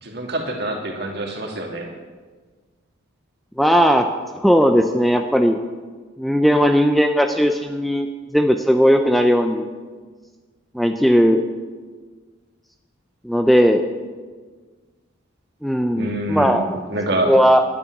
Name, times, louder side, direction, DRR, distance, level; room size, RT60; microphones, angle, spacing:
voice 1, 0.0-1.9 15.9-17.3, right 1 dB, 55° right, 1 dB, 2.5 m, -26 dB
voice 2, 3.6-4.1 4.4-5.6 6.2-8.1 8.3-9.7 10.7-11.4 13.2-13.8 15.6-16.7 17.1-17.6, equal, ahead, 5 dB, 0.5 m, -17 dB
11.0 x 9.0 x 9.2 m, 1.4 s
head